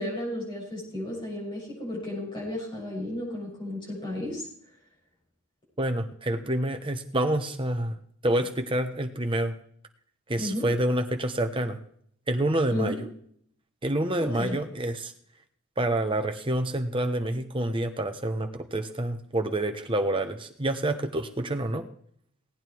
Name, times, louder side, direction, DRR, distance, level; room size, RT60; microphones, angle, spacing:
voice 1, 0.0-4.5 10.4-10.7 12.7-13.0 14.2-14.6, left 1 dB, 20° left, -4 dB, 6.6 m, -33 dB
voice 2, 5.8-8.0 8.2-9.6 10.3-11.8 12.3-13.0 13.8-15.1 15.8-21.9, right 1 dB, 25° right, 6 dB, 1.1 m, -27 dB
17.5 x 9.1 x 4.6 m, 0.64 s
head